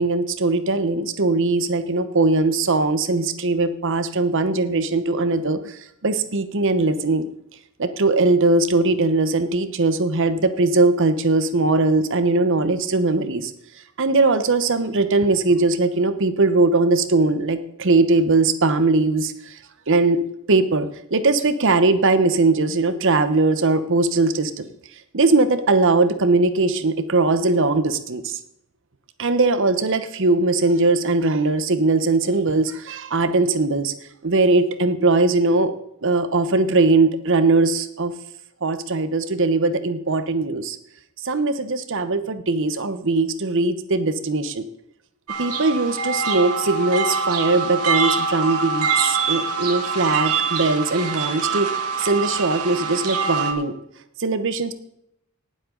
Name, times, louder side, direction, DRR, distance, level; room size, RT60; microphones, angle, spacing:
voice 1, 0.0-7.3 7.8-13.5 14.0-19.6 19.9-20.2 20.5-24.7 25.1-28.4 29.2-33.9 34.2-35.7 36.0-38.1 38.6-40.8 41.2-44.6 45.4-51.7 52.0-53.7 54.2-54.7, right 3 dB, 60° right, 11 dB, 1.0 m, -20 dB
sound 1, 45.3-53.5, right 5 dB, 85° right, 1.8 m, -24 dB
18.0 x 7.7 x 3.9 m, 0.77 s
head